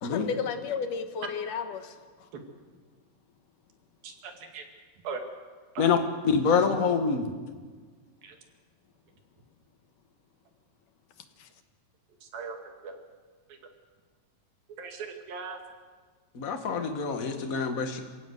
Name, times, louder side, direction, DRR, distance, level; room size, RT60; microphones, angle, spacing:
voice 1, 0.0-1.9 11.4-11.5, left 6 dB, 70° left, 8 dB, 2.7 m, -33 dB
voice 2, 4.0-4.7 5.0-5.2 5.8-6.0 8.2-8.4 12.2-13.0 13.5-13.6 14.8-15.6, right 5 dB, 85° right, 4 dB, 4.0 m, -39 dB
voice 3, 6.2-7.3 16.3-18.0, left 5 dB, 35° left, 5 dB, 1.4 m, -26 dB
27.0 x 16.5 x 8.0 m, 1.5 s
omnidirectional pair, 4.0 m